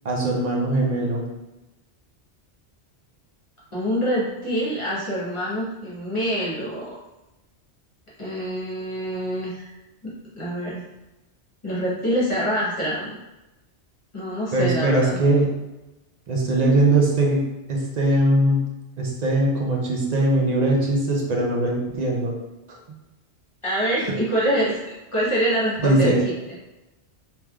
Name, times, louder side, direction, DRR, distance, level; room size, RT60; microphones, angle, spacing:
voice 1, 0.0-1.2 14.5-15.5 16.3-17.4 17.7-18.6 19.0-22.3 25.8-26.2, right 2 dB, 50° right, -1 dB, 0.6 m, -20 dB
voice 2, 3.7-6.9 8.2-9.7 10.0-10.8 11.6-13.2 14.1-15.2 23.6-24.8 25.1-26.1, equal, 30° left, -8 dB, 1.0 m, -25 dB
3.3 x 2.9 x 2.3 m, 1.0 s
omnidirectional pair, 1.1 m